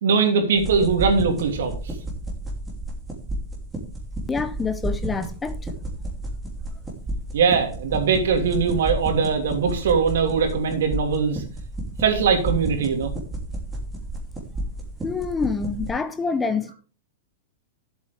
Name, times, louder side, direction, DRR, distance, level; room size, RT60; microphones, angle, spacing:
voice 1, 0.0-1.7 7.3-11.4 12.0-13.1, right 5 dB, 80° right, 2.9 m, -21 dB
sound 1, 0.5-15.9, right 1 dB, 10° right, 2.9 m, -32 dB
voice 2, 4.3-5.6 15.0-16.7, left 4 dB, 10° left, 0.7 m, -26 dB
13.0 x 8.0 x 3.5 m
supercardioid pair, 155°, 0 cm